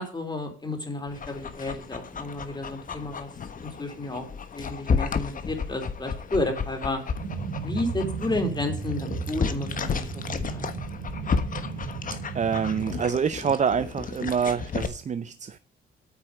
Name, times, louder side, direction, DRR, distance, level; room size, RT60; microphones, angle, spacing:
voice 1, 0.0-4.2 4.5-7.0 7.6-10.6, left 2 dB, 20° left, 3.6 m, -32 dB
Dog, 1.1-14.9, left 5 dB, 45° left, 1.3 m, -33 dB
sound 1, 7.2-13.0, right 5 dB, 75° right, 3.8 m, -35 dB
voice 2, 12.3-15.6, right 7 dB, 35° right, 0.6 m, -26 dB
9.1 x 6.1 x 7.5 m
cardioid pair, 90°, 20 cm